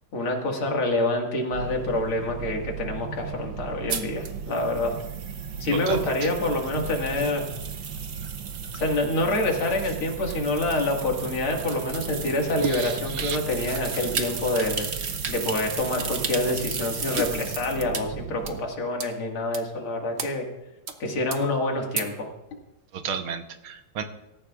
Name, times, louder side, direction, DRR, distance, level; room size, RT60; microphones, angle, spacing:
voice 1, 0.1-4.9 5.6-7.4 8.7-14.9 15.3-20.4 21.0-22.3, left 2 dB, 75° left, 1 dB, 2.8 m, -27 dB
sound 1, 1.5-18.6, right 7 dB, 65° right, 1.5 m, -37 dB
sound 2, 3.9-18.0 18.5-18.6 19.0-19.1 19.5-19.6 20.2-20.3 20.9-21.0 21.3-21.4 22.0-22.1, right 5 dB, 50° right, 0.8 m, -35 dB
voice 2, 5.9-6.3 12.6-13.4 22.9-24.0, right 7 dB, 85° right, 7 dB, 1.8 m, -32 dB
24.5 x 14.5 x 2.4 m, 0.96 s
omnidirectional pair, 2.3 m